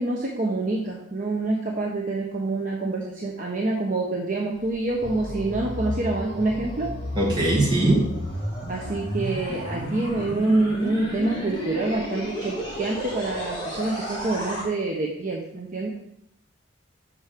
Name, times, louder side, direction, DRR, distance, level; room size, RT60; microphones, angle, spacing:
voice 1, 0.0-6.9 8.7-15.9, right 2 dB, 40° right, -2 dB, 0.9 m, -26 dB
sound 1, 4.5-14.6, equal, 25° left, 2.0 m, -32 dB
voice 2, 7.2-8.1, right 1 dB, 20° right, -4 dB, 2.1 m, -20 dB
6.2 x 5.2 x 5.7 m, 0.79 s
head